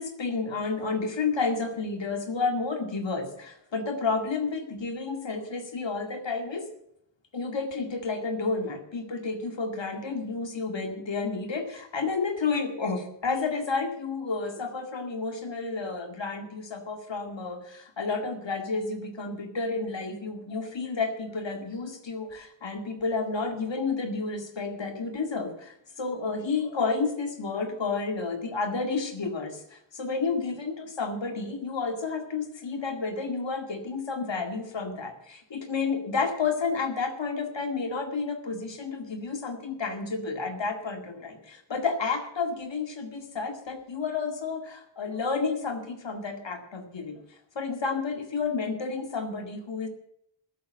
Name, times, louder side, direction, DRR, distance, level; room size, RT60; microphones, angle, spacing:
voice 1, 0.0-6.7 7.3-47.2 47.6-49.9, left 4 dB, 75° left, 5 dB, 2.2 m, -31 dB
13.5 x 8.4 x 7.7 m, 0.73 s
wide cardioid pair, 70°, 44 cm